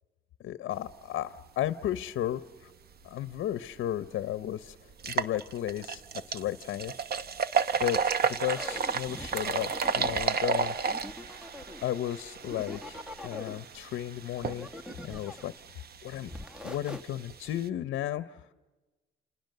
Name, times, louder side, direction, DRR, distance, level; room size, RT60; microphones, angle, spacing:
voice 1, 0.4-2.7 3.0-4.8 5.0-6.0 6.3-6.9 7.8-10.8 11.8-14.7 15.0-15.5 16.0-16.3 16.6-18.5, left 12 dB, 75° left, 13 dB, 0.8 m, -34 dB
sound 1, 3.7-3.8 4.2-4.3 4.9-17.7, right 6 dB, 50° right, 1.0 m, -33 dB
sound 2, 8.5-10.3 10.9-11.9 12.4-13.6 14.3-15.6 16.2-17.0, left 1 dB, 5° right, 1.3 m, -42 dB
29.5 x 27.5 x 6.7 m, 1.2 s
cardioid pair, 90°, 20 cm